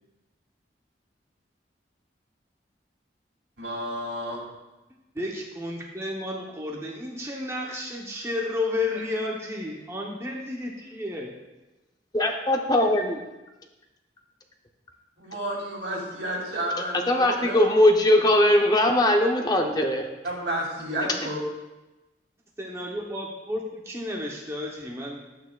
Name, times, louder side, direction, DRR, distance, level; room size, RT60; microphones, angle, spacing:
voice 1, 3.6-4.4 15.2-17.6 20.2-21.4, right 1 dB, 80° right, -3 dB, 2.9 m, -31 dB
voice 2, 5.1-11.3 22.6-25.2, left 2 dB, 15° right, -2 dB, 0.8 m, -32 dB
voice 3, 12.1-13.2 17.1-20.1, left 1 dB, 20° left, 3 dB, 0.6 m, -20 dB
11.5 x 8.5 x 2.3 m, 1.0 s
head